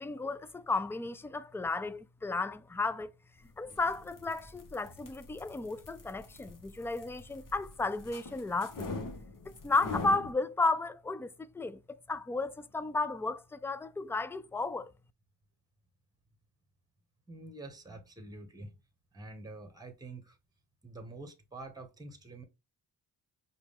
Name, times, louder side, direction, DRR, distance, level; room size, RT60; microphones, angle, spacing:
voice 1, 0.0-3.1 3.6-8.9 9.5-14.9, left 3 dB, 5° left, 0.3 m, -33 dB
sound 1, 3.6-10.3, left 3 dB, 50° left, 1.1 m, -44 dB
voice 2, 17.3-18.8 19.1-20.4 20.8-22.4, right 2 dB, 10° right, 1.1 m, -47 dB
4.9 x 2.3 x 3.5 m
supercardioid pair, 55°, 41 cm